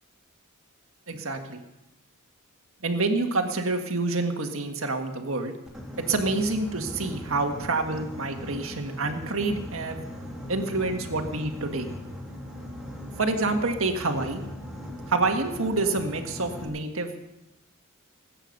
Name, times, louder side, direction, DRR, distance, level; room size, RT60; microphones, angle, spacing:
voice 1, 1.1-1.6 2.8-5.5 6.1-10.0 10.5-11.9 13.2-14.4 15.1-17.1, right 3 dB, 65° right, 5 dB, 1.8 m, -27 dB
Boat Water vehicle, 5.7-16.7, left 1 dB, 5° right, 2.6 m, -39 dB
20.0 x 9.0 x 6.6 m, 0.94 s
head